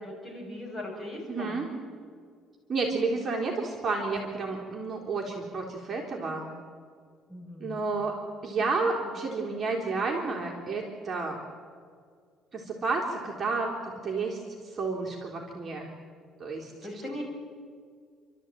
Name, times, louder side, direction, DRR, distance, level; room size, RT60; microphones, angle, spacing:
voice 1, 0.0-1.6 7.3-7.9 16.8-17.2, left 1 dB, 15° left, -1 dB, 6.6 m, -39 dB
voice 2, 1.3-1.7 2.7-6.5 7.6-8.2 8.4-11.4 12.5-14.4 14.6-15.9 16.4-16.7, right 3 dB, 30° right, -1 dB, 3.6 m, -31 dB
29.5 x 13.0 x 9.2 m, 2.1 s
cardioid pair, 135°, 0 cm